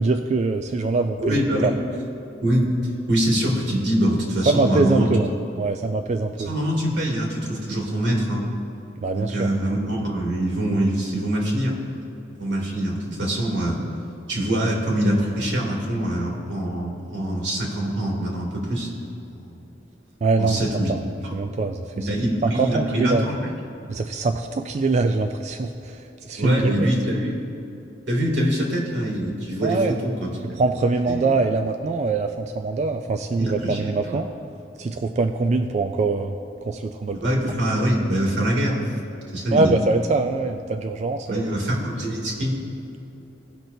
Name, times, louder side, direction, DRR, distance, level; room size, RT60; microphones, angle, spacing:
voice 1, 0.0-1.7 4.5-5.3 5.6-6.5 9.0-9.5 10.0-10.1 20.2-20.6 20.9-21.0 21.3-22.1 22.4-23.3 23.9-26.9 29.6-30.0 30.5-34.3 34.8-36.4 36.6-37.3 39.5-41.5, right 3 dB, 40° right, 6 dB, 0.3 m, -23 dB
voice 2, 1.2-1.7 2.4-2.7 3.1-5.1 6.3-8.5 9.1-11.8 12.4-13.8 14.3-18.9 19.3-19.6 20.4-20.9 22.1-23.5 26.4-27.3 28.1-30.3 31.1-31.3 33.4-33.8 34.0-34.2 37.1-38.9 39.3-39.7 41.3-42.6, right 1 dB, 85° right, -3 dB, 2.2 m, -24 dB
17.5 x 6.0 x 2.7 m, 2.9 s
head